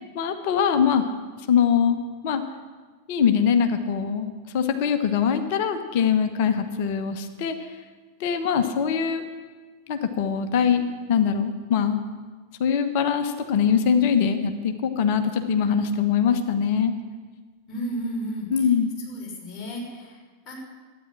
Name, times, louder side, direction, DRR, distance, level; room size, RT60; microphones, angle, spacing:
voice 1, 0.1-1.1 1.5-2.0 2.2-2.4 3.1-7.7 8.2-9.2 9.9-12.0 12.6-16.9 18.5-18.9, left 7 dB, 50° left, 8 dB, 1.1 m, -22 dB
voice 2, 17.7-18.5 19.1-20.2 20.5-20.6, equal, 25° left, -4 dB, 5.8 m, -32 dB
12.5 x 9.6 x 8.8 m, 1.4 s
figure-of-eight pair, 90°, 0 cm